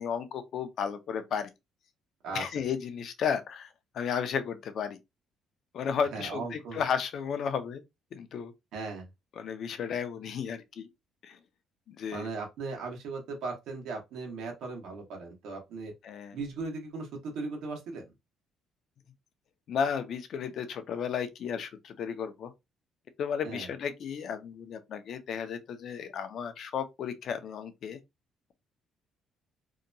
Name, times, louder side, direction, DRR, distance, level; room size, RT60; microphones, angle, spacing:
voice 1, 0.0-1.5 2.3-5.0 5.7-7.8 8.1-8.5 9.4-10.9 11.2-11.4 11.9-12.3 16.0-16.4 19.7-22.5 23.2-28.0, left 7 dB, 50° left, 0.4 m, -33 dB
voice 2, 6.1-6.8 8.7-9.1 12.1-15.9 16.3-18.0 23.4-23.7, right 3 dB, 75° right, 1.1 m, -37 dB
2.8 x 2.2 x 2.6 m
cardioid pair, 155°, 0 cm